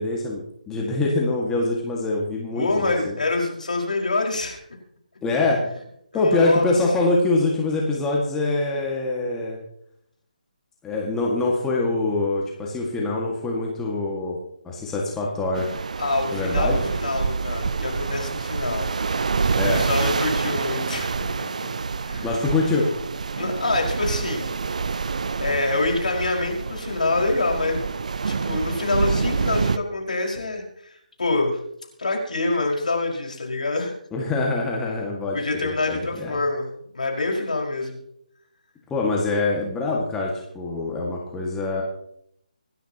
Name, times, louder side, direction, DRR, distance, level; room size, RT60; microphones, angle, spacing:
voice 1, 0.0-3.1 5.2-5.6 6.1-9.6 10.8-14.4 14.6-15.7 16.3-16.8 19.6-19.9 22.2-22.9 34.1-36.4 38.9-41.8, left 2 dB, 10° left, -3 dB, 2.0 m, -24 dB
voice 2, 2.5-4.6 6.1-6.7 16.0-18.9 19.7-21.1 22.0-22.3 23.4-24.5 25.4-27.8 28.2-31.6 32.0-33.9 35.3-36.7 36.9-38.0, left 2 dB, 65° left, 0 dB, 5.3 m, -26 dB
sound 1, 15.5-29.8, right 4 dB, 55° right, 0.6 m, -27 dB
26.0 x 10.0 x 3.0 m, 0.72 s
figure-of-eight pair, 150°, 4 cm